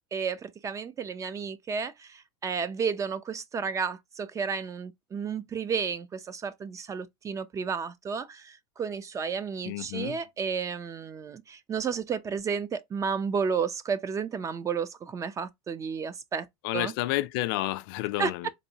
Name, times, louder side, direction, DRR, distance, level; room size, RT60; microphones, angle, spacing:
voice 1, 0.1-16.5 16.7-16.9 18.2-18.3, right 6 dB, 25° right, 0.5 m, -32 dB
voice 2, 9.7-10.2 16.6-18.5, left 17 dB, 65° left, 0.5 m, -30 dB
4.0 x 2.7 x 2.7 m
hypercardioid pair, 105°, 13 cm